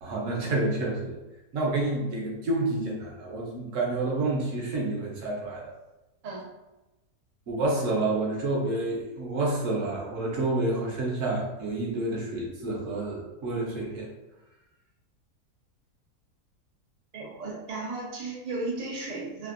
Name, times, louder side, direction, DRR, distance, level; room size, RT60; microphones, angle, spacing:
voice 1, 0.0-1.1 1.5-5.7 7.5-14.1, right 2 dB, 60° right, -2 dB, 1.0 m, -29 dB
voice 2, 17.1-19.5, right 3 dB, 85° right, -3 dB, 0.3 m, -35 dB
3.4 x 2.5 x 2.5 m, 1.0 s
omnidirectional pair, 1.7 m